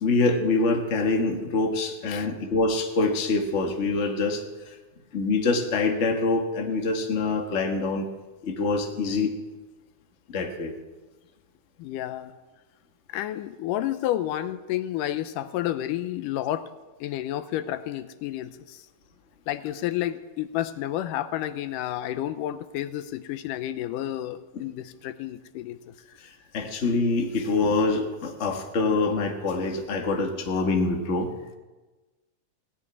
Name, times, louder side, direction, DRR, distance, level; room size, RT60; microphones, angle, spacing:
voice 1, 0.0-4.7 5.1-8.1 8.4-9.3 10.3-10.7 24.5-24.6 26.2-31.3, left 3 dB, 35° left, 3 dB, 1.1 m, -25 dB
voice 2, 11.8-12.3 13.1-16.7 17.0-18.8 19.5-25.8, left 13 dB, 85° left, 12 dB, 2.3 m, -30 dB
18.0 x 7.5 x 9.5 m, 1.2 s
omnidirectional pair, 3.7 m